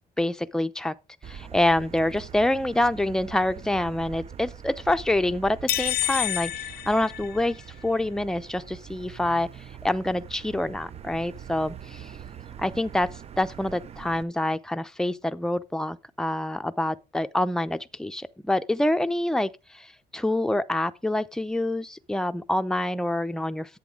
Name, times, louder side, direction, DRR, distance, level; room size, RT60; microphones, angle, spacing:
voice 1, 0.2-0.9 1.2-9.5 9.8-12.1 12.6-13.1 13.4-23.8, left 1 dB, 5° left, 0.6 m, -26 dB
Motor vehicle (road), 1.2-14.2, right 9 dB, 40° right, 0.6 m, -43 dB
sound 1, 5.7-7.8, left 15 dB, 65° left, 0.6 m, -29 dB
10.5 x 8.6 x 3.8 m
cardioid pair, 110°, 17 cm